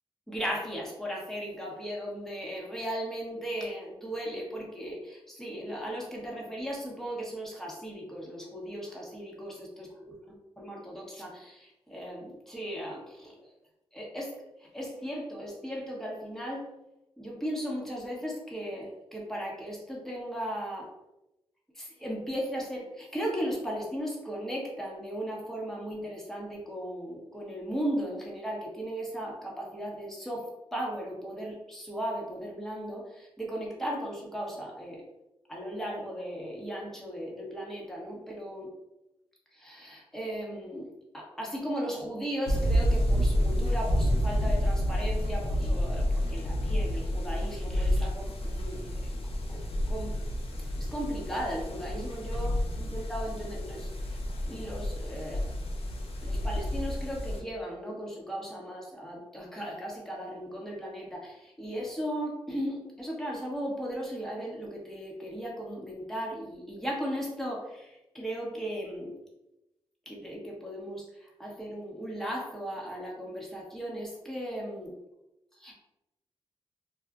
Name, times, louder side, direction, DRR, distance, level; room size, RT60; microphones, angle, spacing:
voice 1, 0.3-9.9 10.6-13.4 13.9-14.3 14.6-16.7 17.2-20.9 21.7-35.0 35.5-38.7 39.5-48.9 49.5-49.6 49.9-50.2 50.8-52.5 52.8-54.2 54.5-55.5 56.2-69.1 70.1-74.9 75.6-75.7, equal, 5° left, -3 dB, 1.0 m, -36 dB
sound 1, 42.5-57.4, equal, 70° left, 0.5 m, -29 dB
2.3 x 2.1 x 3.6 m, 0.92 s
cardioid pair, 75°, 11 cm